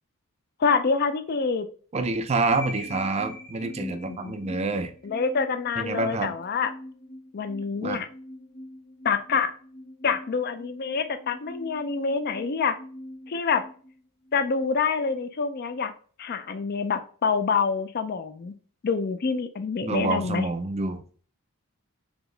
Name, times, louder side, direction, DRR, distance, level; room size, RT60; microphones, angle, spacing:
voice 1, 0.6-1.7 3.8-4.6 5.0-6.7 7.3-8.1 9.0-9.5 10.0-12.8 13.3-13.7 14.3-15.9 16.2-18.5 18.8-20.5, left 5 dB, 45° left, 10 dB, 0.4 m, -26 dB
voice 2, 1.9-4.9 5.8-6.3 7.8-8.0 19.8-21.0, right 3 dB, 30° right, 9 dB, 0.4 m, -27 dB
sound 1, 2.5-14.6, left 1 dB, 90° left, 1.2 m, -43 dB
4.4 x 2.9 x 3.2 m, 0.43 s
head